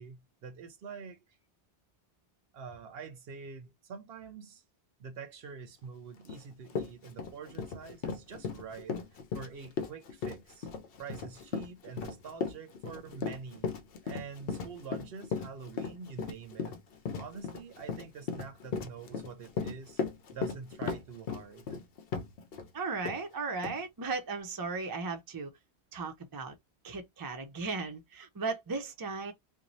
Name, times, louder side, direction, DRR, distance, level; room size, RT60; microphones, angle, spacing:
voice 1, 0.0-1.4 2.5-4.6 5.0-9.0 9.3-10.7 11.0-13.7 14.0-16.8 17.2-20.0 20.3-21.8, right 5 dB, 65° right, 0.8 m, -46 dB
Run, 6.3-6.4 6.7-22.7 23.0-23.2 23.6-23.8, left 5 dB, 65° left, 0.7 m, -36 dB
voice 2, 22.7-25.5 25.9-26.5 26.8-29.3, right 4 dB, 30° right, 0.4 m, -36 dB
2.6 x 2.1 x 3.0 m
omnidirectional pair, 1.1 m